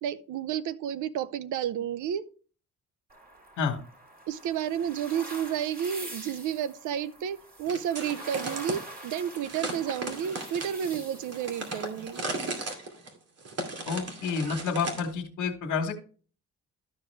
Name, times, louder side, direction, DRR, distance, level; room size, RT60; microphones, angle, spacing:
voice 1, 0.0-2.2 4.3-12.2, right 9 dB, 80° right, 0.7 m, -31 dB
sound 1, 3.1-12.7, right 1 dB, 30° right, 2.7 m, -46 dB
sound 2, 7.7-8.8 9.4-15.1, right 2 dB, 55° right, 2.5 m, -36 dB
voice 2, 13.9-15.9, left 5 dB, 80° left, 1.5 m, -29 dB
12.5 x 5.2 x 3.3 m
cardioid pair, 90°, 30 cm